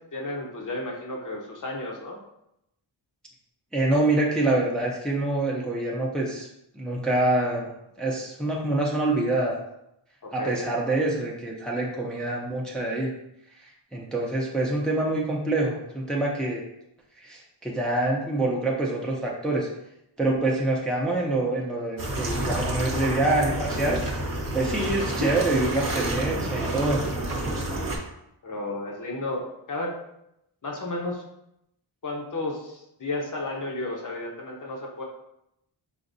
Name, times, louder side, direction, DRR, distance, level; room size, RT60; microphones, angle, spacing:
voice 1, 0.1-2.2 10.2-10.7 28.4-29.9 30.6-31.2 32.0-35.0, left 2 dB, 40° left, -1 dB, 0.8 m, -33 dB
voice 2, 3.7-6.5 6.7-7.7 8.0-9.6 10.3-13.1 13.9-16.6 17.2-19.7 20.2-24.0 24.5-27.0, right 2 dB, ahead, -2 dB, 0.6 m, -26 dB
sound 1, 22.0-28.0, right 1 dB, 45° right, 0.8 m, -29 dB
4.9 x 2.5 x 2.6 m, 0.82 s
wide cardioid pair, 70°, 48 cm